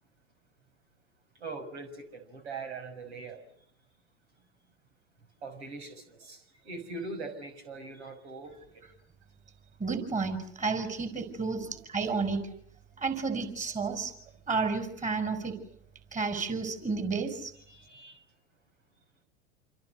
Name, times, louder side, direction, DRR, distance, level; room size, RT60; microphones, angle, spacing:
voice 1, 1.4-3.4 5.4-8.5 11.6-11.7 17.7-18.2, right 3 dB, 70° right, 6.2 m, -42 dB
voice 2, 9.8-12.4 13.0-14.1 14.5-15.6 16.1-17.5, right 4 dB, 20° right, 5.4 m, -31 dB
28.0 x 27.5 x 6.6 m
hypercardioid pair, 95°, 34 cm